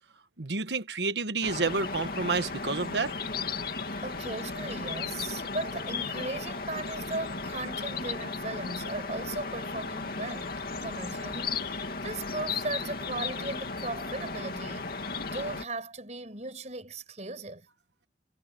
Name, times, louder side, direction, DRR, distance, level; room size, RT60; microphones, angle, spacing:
voice 1, 0.4-3.1, right 3 dB, 75° right, 1.3 m, -29 dB
sound 1, 1.4-15.7, left 4 dB, 55° left, 2.5 m, -35 dB
voice 2, 4.0-10.5 10.8-14.9 15.3-17.7, right 2 dB, 40° right, 6.1 m, -37 dB
head